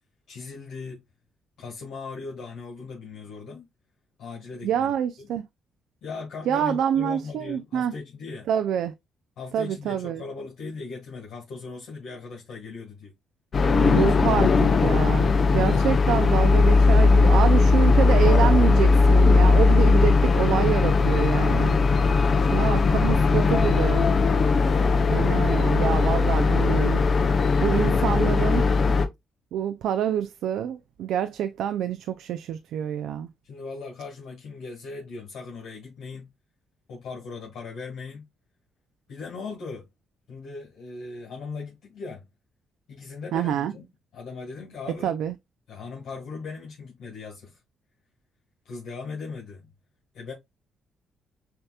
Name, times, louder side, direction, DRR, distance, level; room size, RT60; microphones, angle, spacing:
voice 1, 0.3-1.0 1.6-3.7 4.2-4.9 5.2-5.3 6.0-8.5 9.4-13.1 13.8-14.1 15.6-16.0 33.4-36.3 36.9-38.3 39.1-39.9 40.3-42.2 42.9-43.8 44.1-45.1 45.7-47.6 48.6-49.7 50.1-50.3, left 4 dB, 75° left, 1.7 m, -39 dB
voice 2, 4.6-5.5 6.5-7.9 8.5-8.9 9.5-10.2 13.8-21.8 22.5-24.1 25.1-27.0 27.6-28.6 29.5-33.3 43.3-43.7 45.0-45.3, right 9 dB, 80° right, 0.4 m, -26 dB
sound 1, 13.5-29.1, left 4 dB, 45° left, 0.7 m, -19 dB
6.7 x 2.9 x 2.3 m
cardioid pair, 90°, 0 cm